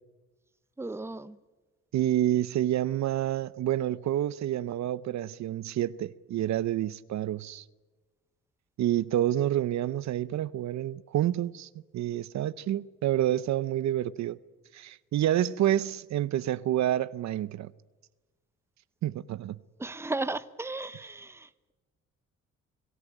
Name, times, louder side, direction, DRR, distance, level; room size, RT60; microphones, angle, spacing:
voice 1, 0.8-1.4 19.8-21.7, right 2 dB, 10° right, 0.8 m, -35 dB
voice 2, 1.9-7.6 8.8-14.4 14.7-17.7 19.0-19.6, right 12 dB, 65° right, 0.7 m, -28 dB
25.0 x 14.5 x 9.0 m
cardioid pair, 90°, 30 cm